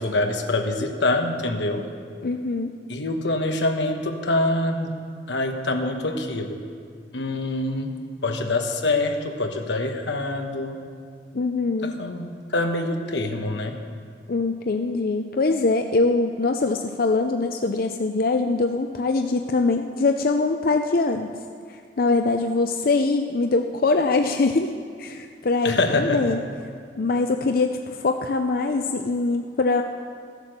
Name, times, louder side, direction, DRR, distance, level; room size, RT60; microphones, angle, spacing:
voice 1, 0.0-1.9 2.9-5.0 5.3-6.6 7.1-7.9 8.2-10.8 11.8-13.8 25.6-26.4, left 2 dB, 90° left, 4 dB, 1.2 m, -25 dB
voice 2, 2.2-2.7 11.3-12.0 14.3-21.3 22.0-24.7 25.0-26.4 27.0-29.8, left 3 dB, 55° left, 5 dB, 0.5 m, -23 dB
14.5 x 8.2 x 6.6 m, 2.2 s
head